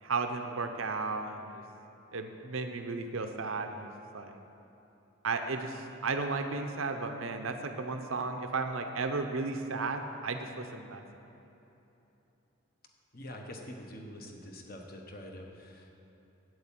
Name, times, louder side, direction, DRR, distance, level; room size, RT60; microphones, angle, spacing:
voice 1, 0.0-1.6 2.1-4.4 5.2-11.0, right 3 dB, 75° right, 5 dB, 0.7 m, -34 dB
voice 2, 13.1-15.9, left 1 dB, 45° left, 2 dB, 1.1 m, -45 dB
8.4 x 7.9 x 7.4 m, 3.0 s
head